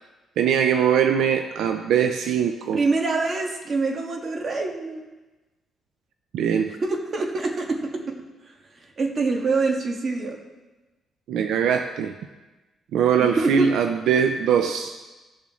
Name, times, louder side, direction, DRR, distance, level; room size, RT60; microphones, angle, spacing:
voice 1, 0.4-2.8 6.3-6.7 11.3-12.1 12.9-14.9, right 8 dB, 80° right, 7 dB, 0.5 m, -21 dB
voice 2, 2.7-5.0 6.8-8.5 9.0-10.4 13.2-13.7, right 3 dB, 40° right, 1 dB, 1.7 m, -25 dB
16.5 x 7.0 x 3.1 m, 1.2 s
cardioid pair, 90°, 0 cm